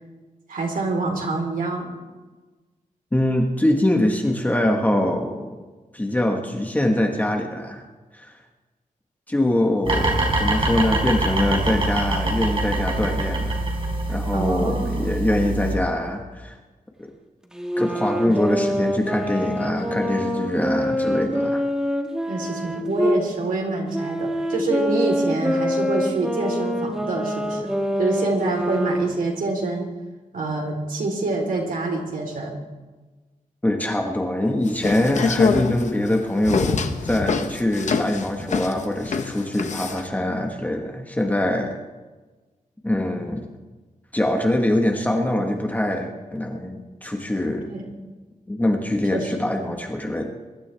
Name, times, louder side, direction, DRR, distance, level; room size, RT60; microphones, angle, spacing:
voice 1, 0.5-1.9 14.3-15.2 22.3-27.7 28.0-29.9 30.3-32.5 47.7-47.9 49.1-49.3, right 2 dB, 80° right, 1 dB, 3.7 m, -26 dB
voice 2, 3.1-5.6 5.9-7.8 8.1-8.3 9.3-13.7 14.1-16.6 17.0-17.1 17.8-21.6 33.6-41.8 42.8-43.5 44.1-47.7 48.5-50.3, left 1 dB, 10° left, 2 dB, 1.4 m, -23 dB
sound 1, 9.8-15.8, right 2 dB, 40° right, 4.1 m, -24 dB
sound 2, 17.5-23.2 23.9-29.3, equal, 5° right, 1.3 m, -25 dB
sound 3, 34.7-40.1, left 5 dB, 55° left, 1.0 m, -25 dB
22.5 x 12.5 x 3.4 m, 1.2 s
wide cardioid pair, 165°, 14 cm